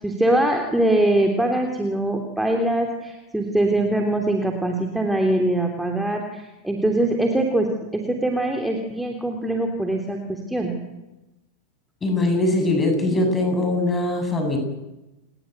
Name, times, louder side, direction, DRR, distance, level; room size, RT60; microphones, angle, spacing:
voice 1, 0.0-10.7, right 1 dB, 5° right, 2 dB, 3.3 m, -23 dB
voice 2, 12.0-14.6, left 2 dB, 15° left, 5 dB, 7.8 m, -21 dB
30.0 x 20.5 x 8.1 m, 1.0 s
figure-of-eight pair, 90°, 0 cm